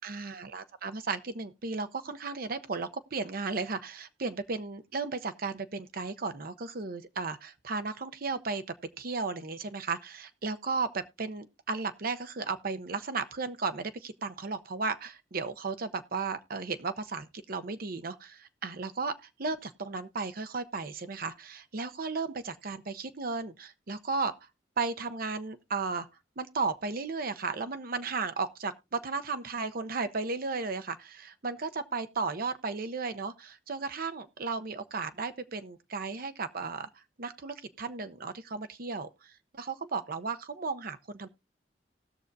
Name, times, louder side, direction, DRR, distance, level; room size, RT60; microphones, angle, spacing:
voice 1, 0.0-8.6 9.0-24.3 24.8-26.1 26.4-36.9 37.2-41.3, right 4 dB, 55° right, 0.8 m, -35 dB
19.0 x 6.4 x 2.6 m
head